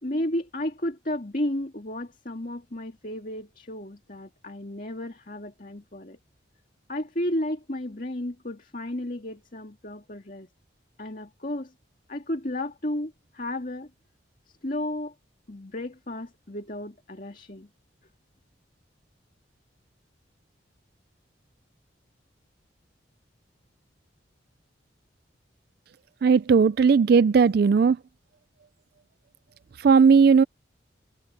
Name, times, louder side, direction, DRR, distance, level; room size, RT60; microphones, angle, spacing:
voice 1, 0.0-6.2 6.9-10.5 11.0-11.7 12.1-13.9 14.6-15.1 15.5-17.7, left 1 dB, 45° left, 2.3 m, -33 dB
voice 2, 26.2-28.0 29.8-30.4, right 5 dB, 55° right, 0.3 m, -17 dB
head